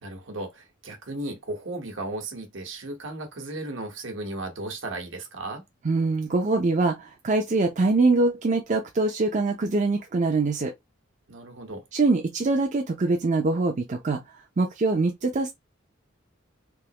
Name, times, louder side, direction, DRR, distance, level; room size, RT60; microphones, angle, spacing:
voice 1, 0.0-5.6 11.3-11.8, right 2 dB, 65° right, 1.2 m, -35 dB
voice 2, 5.8-10.7 11.9-14.2 14.6-15.5, right 3 dB, 40° right, 0.5 m, -23 dB
3.5 x 2.9 x 2.9 m
head